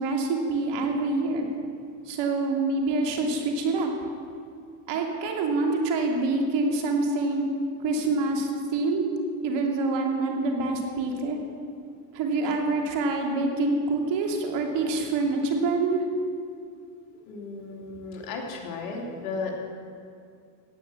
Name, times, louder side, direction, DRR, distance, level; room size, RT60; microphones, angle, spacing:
voice 1, 0.0-1.5 2.1-3.9 4.9-7.5 7.8-9.1 9.4-11.4 12.1-16.0, right 3 dB, 60° right, 2 dB, 2.8 m, -26 dB
voice 2, 17.3-19.6, left 4 dB, 80° left, 1 dB, 3.1 m, -34 dB
15.5 x 9.5 x 7.3 m, 2.3 s
supercardioid pair, 100°, 48 cm